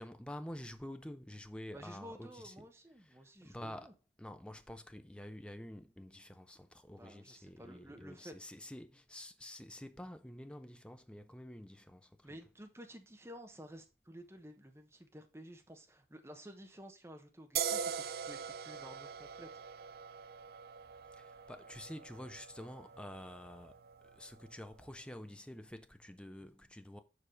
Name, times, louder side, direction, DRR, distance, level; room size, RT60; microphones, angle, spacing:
voice 1, 0.0-2.5 3.1-3.9 4.2-12.3 21.2-23.8 24.1-27.0, left 1 dB, 5° left, 0.6 m, -48 dB
voice 2, 1.7-3.9 6.9-8.3 12.2-19.5, equal, 15° right, 1.0 m, -52 dB
sound 1, 17.6-24.9, right 7 dB, 55° right, 0.4 m, -43 dB
7.0 x 4.7 x 5.0 m
head